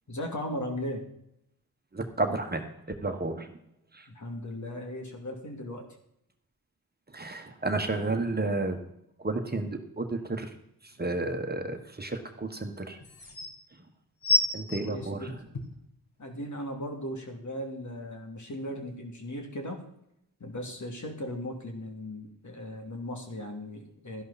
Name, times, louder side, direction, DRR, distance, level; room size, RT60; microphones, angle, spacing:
voice 1, 0.1-1.0 4.1-5.9 14.8-15.4 16.2-19.8 20.4-24.2, left 1 dB, 50° left, 3 dB, 2.7 m, -37 dB
voice 2, 1.9-2.6 3.0-3.5 3.9-4.1 7.1-8.8 9.2-10.6 10.8-13.0 14.5-15.4, right 2 dB, 25° right, 5 dB, 1.4 m, -31 dB
sound 1, 10.9-11.0 12.6-12.7 13.0-13.5 14.2-15.8 16.5-16.6, left 1 dB, 70° left, 2.5 m, -28 dB
12.5 x 11.0 x 4.2 m, 0.75 s
cardioid pair, 70°, 37 cm